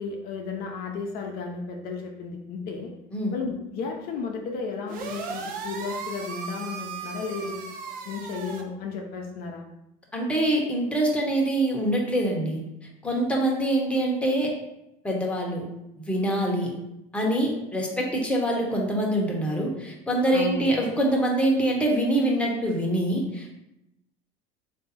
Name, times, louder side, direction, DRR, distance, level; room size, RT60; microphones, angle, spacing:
voice 1, 0.0-2.9 3.3-7.6 8.1-9.7 20.3-20.7, left 4 dB, 60° left, 1 dB, 0.7 m, -33 dB
sound 1, 4.9-8.6, right 5 dB, 50° right, 0.7 m, -36 dB
voice 2, 10.1-12.6 13.0-14.6 15.0-15.7 16.0-16.7 17.1-23.5, right 1 dB, 5° left, -1 dB, 1.0 m, -25 dB
3.5 x 2.7 x 4.1 m, 0.87 s
supercardioid pair, 105°, 18 cm